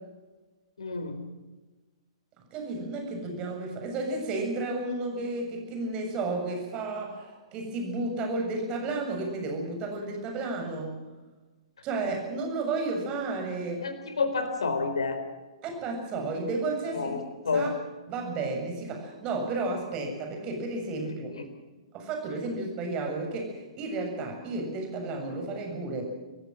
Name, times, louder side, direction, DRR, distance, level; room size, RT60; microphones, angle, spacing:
voice 1, 0.8-1.2 13.8-15.2 16.9-17.7 21.4-21.5, left 4 dB, 65° left, 8 dB, 4.1 m, -29 dB
voice 2, 2.5-11.0 11.8-13.8 15.6-17.1 17.5-17.7 18.1-21.3 21.9-26.0, right 3 dB, 30° right, 3 dB, 7.2 m, -32 dB
26.5 x 15.5 x 7.6 m, 1.2 s
figure-of-eight pair, 115°, 3 cm